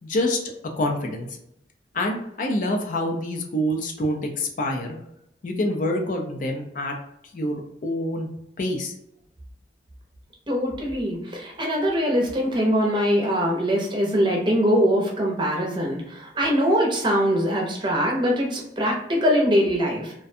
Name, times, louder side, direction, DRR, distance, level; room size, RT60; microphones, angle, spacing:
voice 1, 0.0-0.4 0.8-1.4 1.9-5.0 5.4-6.9 7.3-8.3 8.6-8.9, left 1 dB, 45° left, 2 dB, 0.4 m, -26 dB
voice 2, 10.5-20.1, equal, 25° right, -1 dB, 0.6 m, -22 dB
2.4 x 2.2 x 2.6 m, 0.79 s
head